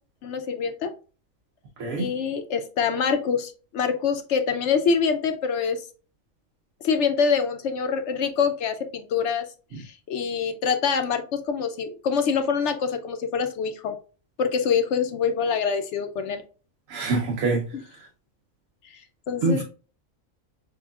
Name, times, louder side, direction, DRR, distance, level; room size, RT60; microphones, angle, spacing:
voice 1, 0.2-0.9 2.0-5.8 6.8-9.4 9.8-13.9 14.4-16.4 17.7-17.8 19.3-19.6, left 6 dB, 70° left, 0.8 m, -25 dB
voice 2, 16.9-17.6 19.4-19.6, right 3 dB, 85° right, 1.1 m, -24 dB
6.6 x 2.3 x 2.3 m
omnidirectional pair, 1.3 m